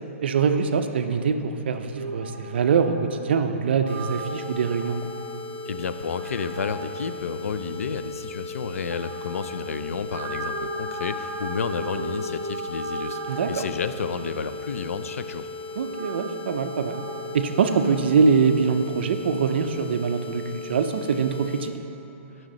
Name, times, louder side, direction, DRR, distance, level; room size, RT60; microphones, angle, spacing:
voice 1, 0.2-5.0 13.3-13.6 15.8-17.0 17.3-21.7, right 5 dB, 50° right, 8 dB, 0.5 m, -23 dB
sound 1, 1.9-17.9, right 1 dB, 5° right, 1.0 m, -38 dB
sound 2, 3.9-21.7, left 3 dB, 45° left, 0.8 m, -38 dB
voice 2, 5.7-15.5, left 6 dB, 85° left, 11 dB, 0.4 m, -31 dB
9.1 x 6.2 x 3.8 m, 3.0 s
hypercardioid pair, 170°, 7 cm